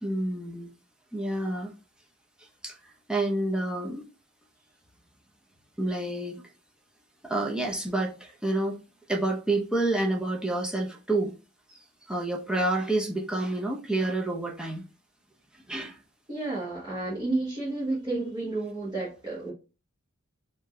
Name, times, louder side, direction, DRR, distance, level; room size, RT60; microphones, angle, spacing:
voice 1, 0.0-0.7 1.1-1.7 2.6-2.7 3.1-4.0 5.8-6.4 7.2-8.8 9.1-11.3 12.1-14.8 15.7-16.0, right 2 dB, 5° right, 0.7 m, -28 dB
voice 2, 16.3-19.5, right 2 dB, 20° right, 1.3 m, -31 dB
4.3 x 2.7 x 3.1 m
head